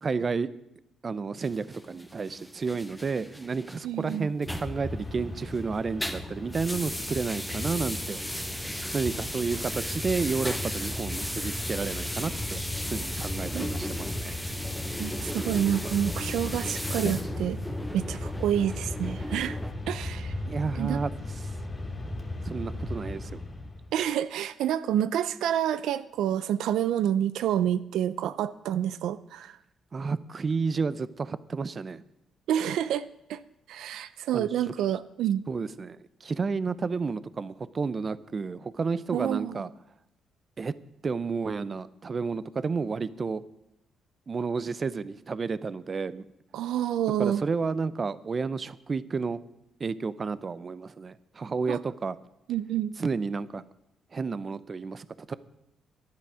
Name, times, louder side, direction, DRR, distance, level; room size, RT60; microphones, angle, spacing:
voice 1, 0.0-0.5 1.0-8.2 8.9-12.6 12.9-14.4 20.5-21.1 22.4-23.4 29.9-32.0 34.3-34.5 35.5-39.7 40.6-40.7 41.0-43.4 44.3-46.2 47.1-49.4 49.8-52.2 53.0-53.6 54.1-55.3, right 4 dB, 35° right, 17 dB, 0.6 m, -31 dB
sound 1, 1.4-5.6 5.9-19.7, equal, ahead, 1.1 m, -36 dB
voice 2, 3.8-4.3 13.5-13.7 15.0-17.6 17.9-19.6 19.9-20.3 20.8-21.0 23.9-29.5 32.5-33.0 33.3-33.4 33.7-35.4 39.1-39.6 46.5-47.4 51.7-51.8 52.5-52.9, right 10 dB, 80° right, 14 dB, 0.4 m, -28 dB
Mechanisms, 4.5-23.9, left 1 dB, 25° left, 2.5 m, -36 dB
11.5 x 10.5 x 6.2 m, 0.82 s
cardioid pair, 90°, 0 cm